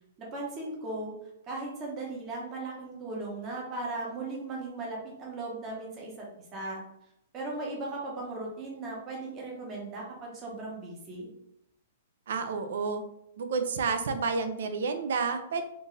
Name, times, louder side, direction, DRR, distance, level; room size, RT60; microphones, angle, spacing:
voice 1, 0.2-1.1 1.5-6.1 6.5-6.8 7.3-11.3, right 2 dB, 20° right, -3 dB, 0.9 m, -37 dB
voice 2, 12.3-13.0 13.4-15.6, right 4 dB, 60° right, 8 dB, 0.5 m, -30 dB
4.3 x 2.6 x 3.2 m, 0.79 s
hypercardioid pair, 175°, 0 cm